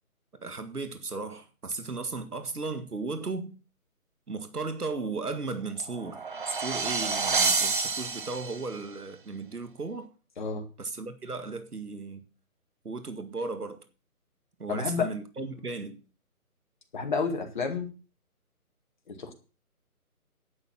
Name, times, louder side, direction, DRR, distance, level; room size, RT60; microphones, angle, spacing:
voice 1, 0.4-3.5 4.3-6.2 6.6-10.1 10.8-12.2 12.8-13.8 14.6-16.0, right 3 dB, 85° right, 2.1 m, -35 dB
sound 1, 5.8-8.8, right 4 dB, 35° right, 0.9 m, -28 dB
voice 2, 14.7-15.1 16.9-17.9 19.1-19.3, left 5 dB, 30° left, 2.1 m, -30 dB
11.0 x 6.7 x 7.7 m
figure-of-eight pair, 160°, 45 cm